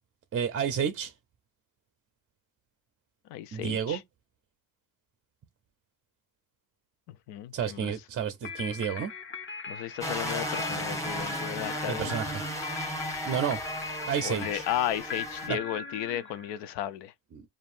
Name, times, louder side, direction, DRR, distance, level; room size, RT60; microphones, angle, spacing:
voice 1, 0.3-1.1 3.5-4.0 7.5-9.1 11.9-12.4 13.3-13.6 14.1-14.6 15.5-15.6 17.3-17.4, right 8 dB, 35° right, 0.5 m, -30 dB
voice 2, 3.3-4.0 7.3-7.9 9.7-12.2 14.2-17.1, left 11 dB, 75° left, 0.6 m, -34 dB
sound 1, 8.4-16.7, left 5 dB, 30° left, 0.7 m, -40 dB
sound 2, 10.0-15.5, equal, 5° left, 1.1 m, -35 dB
7.1 x 2.4 x 2.5 m
cardioid pair, 105°, 43 cm